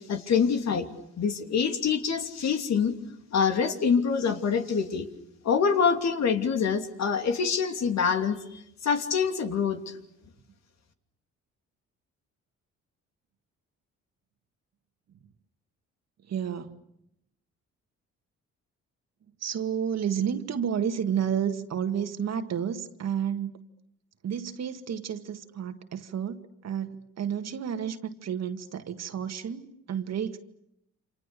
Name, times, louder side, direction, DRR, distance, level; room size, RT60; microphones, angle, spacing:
voice 1, 0.1-0.9 1.2-2.9 3.3-5.1 5.4-8.4 8.8-9.8, left 6 dB, 60° left, 6 dB, 2.9 m, -25 dB
voice 2, 16.3-16.8 19.4-23.5 24.2-30.4, right 8 dB, 60° right, 8 dB, 1.9 m, -31 dB
29.0 x 26.5 x 6.9 m, 0.78 s
cardioid pair, 90°, 30 cm